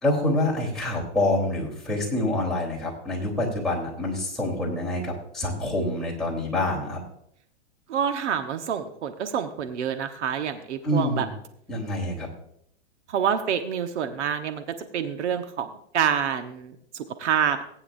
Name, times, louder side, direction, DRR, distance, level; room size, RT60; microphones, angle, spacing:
voice 1, 0.0-7.0 10.8-11.3 11.7-12.3, left 1 dB, ahead, -5 dB, 3.8 m, -26 dB
voice 2, 7.9-11.3 13.1-17.6, right 8 dB, 75° right, 7 dB, 1.3 m, -27 dB
18.5 x 9.6 x 2.7 m, 0.69 s
hypercardioid pair, 140°, 35 cm